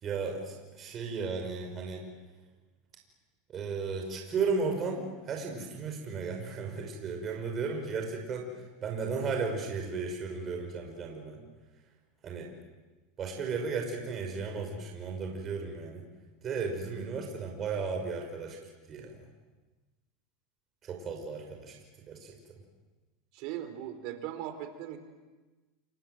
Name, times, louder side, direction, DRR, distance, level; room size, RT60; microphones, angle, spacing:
voice 1, 0.0-2.0 3.5-11.4 12.2-12.5 13.2-16.0 16.4-18.6 18.9-19.2 20.8-21.7 22.1-22.4, right 4 dB, 30° right, 2 dB, 5.6 m, -34 dB
voice 2, 23.3-25.0, right 11 dB, 60° right, 8 dB, 4.1 m, -39 dB
29.5 x 24.0 x 8.0 m, 1.2 s
supercardioid pair, 130°, 0 cm